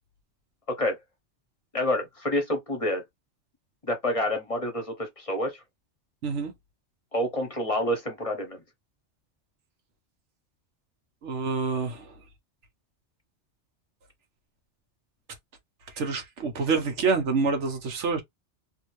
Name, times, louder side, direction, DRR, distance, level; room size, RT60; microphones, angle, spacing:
voice 1, 1.7-3.0 3.8-5.6 7.1-8.6, left 1 dB, 30° left, 0.9 m, -28 dB
voice 2, 11.2-12.1 16.0-18.2, right 4 dB, 90° right, 1.3 m, -27 dB
2.9 x 2.7 x 3.1 m
omnidirectional pair, 1.2 m